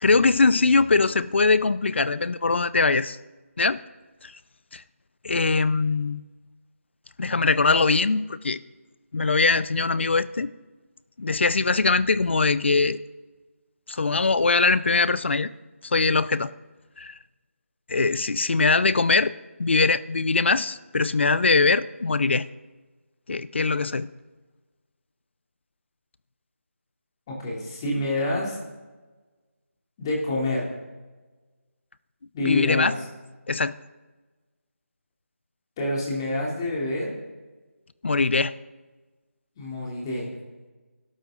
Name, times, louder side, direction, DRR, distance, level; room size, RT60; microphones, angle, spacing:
voice 1, 0.0-3.2 3.6-3.8 4.2-4.3 4.7-4.8 5.2-6.2 7.2-8.6 9.1-10.5 11.2-13.0 13.9-15.5 15.8-16.5 17.0-17.1 17.9-19.3 19.6-22.4 23.3-24.1 32.4-32.9 33.5-33.7 38.0-38.5, left 4 dB, 50° left, 16 dB, 0.7 m, -22 dB
voice 2, 27.3-28.6 30.0-30.7 32.3-33.0 35.8-37.1 39.6-40.3, left 2 dB, 20° left, -3 dB, 3.2 m, -27 dB
24.5 x 12.5 x 3.9 m, 1.3 s
figure-of-eight pair, 165°, 8 cm